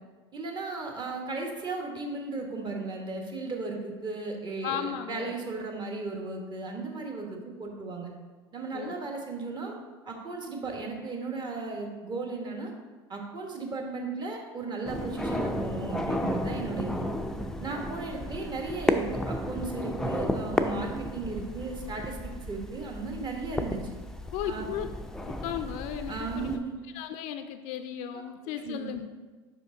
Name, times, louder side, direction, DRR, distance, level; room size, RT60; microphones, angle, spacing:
voice 1, 0.3-8.1 8.5-9.7 10.1-12.7 13.1-17.1 17.6-23.8 24.5-24.7 26.1-26.8 28.6-28.9, right 3 dB, 35° right, 1 dB, 1.2 m, -35 dB
voice 2, 4.6-5.3 8.7-9.0 24.3-24.9 25.2-26.6 26.9-29.1, left 10 dB, 60° left, 7 dB, 0.4 m, -35 dB
sound 1, 14.9-26.6, left 1 dB, 5° left, 0.4 m, -33 dB
5.2 x 5.1 x 3.8 m, 1.3 s
hypercardioid pair, 85°, 13 cm